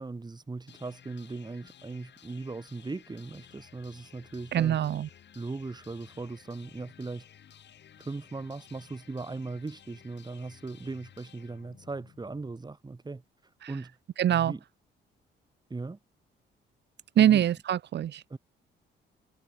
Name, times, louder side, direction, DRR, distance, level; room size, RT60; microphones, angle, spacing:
voice 1, 0.0-4.8 5.3-7.2 8.0-14.0 14.3-14.6 15.7-16.0 17.2-17.4 18.3-18.4, right 3 dB, 20° right, 2.6 m, -39 dB
sound 1, 0.7-12.6, left 9 dB, 60° left, 6.1 m, -55 dB
voice 2, 4.5-5.1 13.6-13.7 14.2-14.5 17.2-18.2, right 11 dB, 60° right, 1.0 m, -24 dB
cardioid pair, 90°, 20 cm